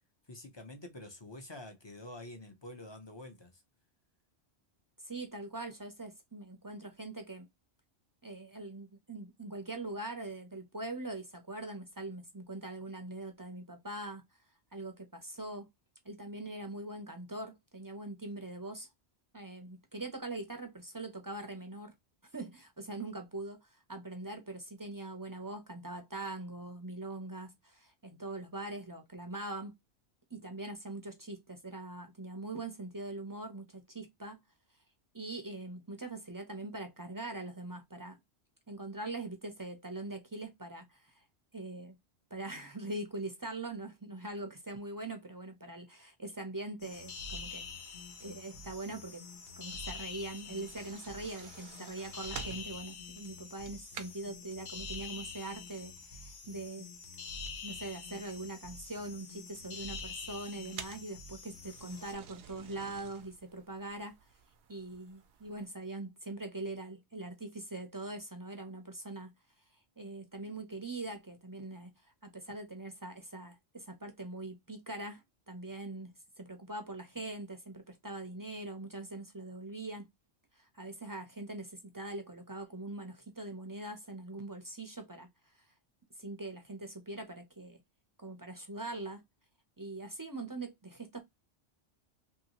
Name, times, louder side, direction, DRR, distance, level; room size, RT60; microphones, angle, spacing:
voice 1, 0.3-3.6, left 1 dB, 30° left, 0.5 m, -47 dB
voice 2, 5.0-7.5 8.2-14.2 14.7-15.7 16.0-18.9 19.3-21.9 22.3-29.7 30.3-34.4 35.1-38.2 38.7-41.2 41.5-42.0 42.3-49.2 49.6-56.9 57.6-64.2 64.7-69.3 70.0-80.1 80.5-85.3 86.2-87.8 88.2-89.2 89.8-91.2, right 2 dB, 30° right, 0.4 m, -42 dB
sound 1, 46.8-62.1, left 4 dB, 70° left, 1.0 m, -46 dB
sound 2, 46.8-65.7, right 8 dB, 80° right, 0.9 m, -53 dB
3.0 x 2.7 x 2.8 m
omnidirectional pair, 1.1 m